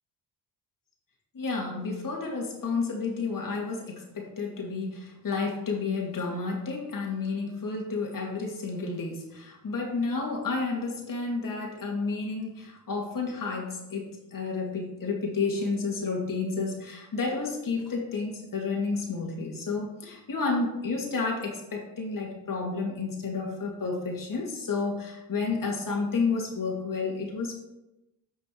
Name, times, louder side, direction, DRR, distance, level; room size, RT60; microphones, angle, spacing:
voice 1, 1.3-27.5, left 4 dB, 45° left, 0 dB, 2.5 m, -31 dB
8.8 x 6.0 x 3.3 m, 0.92 s
hypercardioid pair, 50°, 44 cm